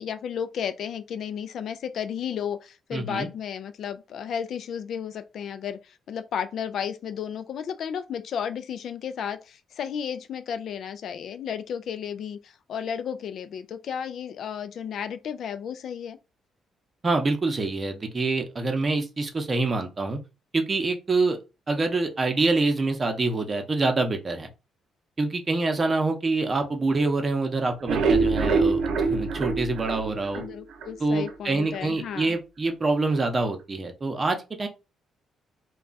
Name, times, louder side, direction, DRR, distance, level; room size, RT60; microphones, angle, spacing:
voice 1, 0.0-16.2 30.4-32.4, left 8 dB, 65° left, 0.3 m, -33 dB
voice 2, 2.9-3.3 17.0-20.2 20.5-21.4 21.7-24.5 25.2-30.4 31.0-34.7, right 3 dB, 30° right, 0.7 m, -26 dB
sound 1, 27.7-30.9 31.3-31.4 31.7-31.8 32.2-32.3, right 4 dB, 75° right, 0.6 m, -24 dB
2.3 x 2.3 x 3.9 m
cardioid pair, 90°, 0 cm